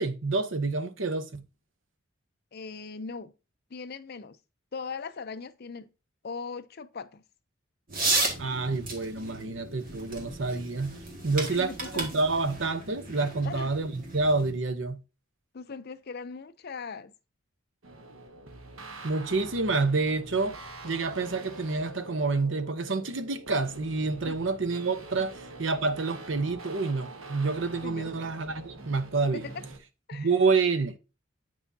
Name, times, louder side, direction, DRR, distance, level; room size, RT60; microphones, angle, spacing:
voice 1, 0.0-1.5 8.4-11.0 11.2-15.0 19.0-25.3 25.6-29.5 30.1-31.0, right 3 dB, 65° right, 0.9 m, -28 dB
voice 2, 2.5-3.3 3.7-4.4 4.7-5.9 6.2-7.2 11.4-12.2 13.4-13.7 15.5-17.1 24.2-24.4 27.8-28.3 29.3-29.6 30.1-30.3, left 5 dB, 50° left, 0.5 m, -39 dB
sound 1, 7.9-14.5, right 2 dB, 45° right, 2.0 m, -34 dB
sound 2, 17.8-29.8, right 2 dB, 90° right, 1.2 m, -45 dB
8.6 x 6.2 x 2.7 m
head